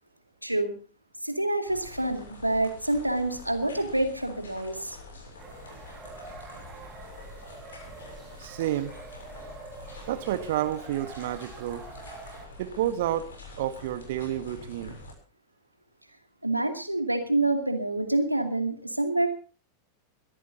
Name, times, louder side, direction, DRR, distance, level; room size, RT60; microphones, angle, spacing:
voice 1, 0.4-0.7 1.2-5.0 16.4-19.3, right 2 dB, 85° right, 2.4 m, -27 dB
sound 1, 1.6-15.1, left 2 dB, 70° left, 7.2 m, -46 dB
sound 2, 5.4-12.4, right 3 dB, 25° right, 5.4 m, -46 dB
voice 2, 8.4-9.0 10.1-11.8 12.6-13.3 13.6-15.0, right 12 dB, 55° right, 1.7 m, -30 dB
22.5 x 14.0 x 4.0 m
figure-of-eight pair, 90°, 0 cm